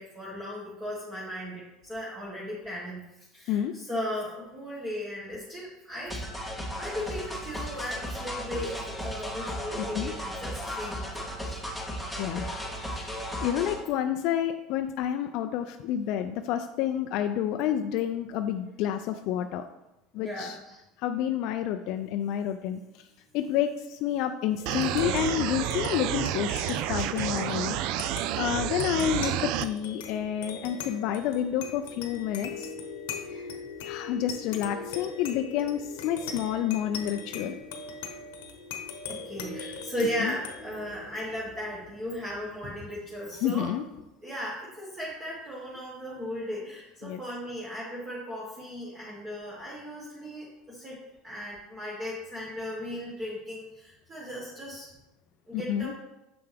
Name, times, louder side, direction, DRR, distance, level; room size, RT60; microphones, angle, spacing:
voice 1, 0.0-6.2 6.7-11.4 20.2-20.8 39.1-43.7 44.2-51.0 51.2-54.9 55.5-55.9, equal, 20° right, -6 dB, 1.6 m, -36 dB
sound 1, 6.1-13.8, equal, ahead, 1.1 m, -35 dB
voice 2, 9.8-10.1 12.2-12.6 12.9-19.6 20.1-20.6 21.0-22.8 23.3-27.8 28.4-32.7 33.3-33.5 33.8-37.6 40.2-40.3 43.4-43.8 47.0-47.2 55.5-55.9, left 10 dB, 60° left, 8 dB, 0.4 m, -29 dB
sound 2, 24.6-43.5, left 5 dB, 85° left, 1.0 m, -41 dB
sound 3, 24.7-29.7, right 12 dB, 60° right, 0.3 m, -30 dB
6.8 x 5.7 x 3.4 m, 0.92 s
supercardioid pair, 120°, 0 cm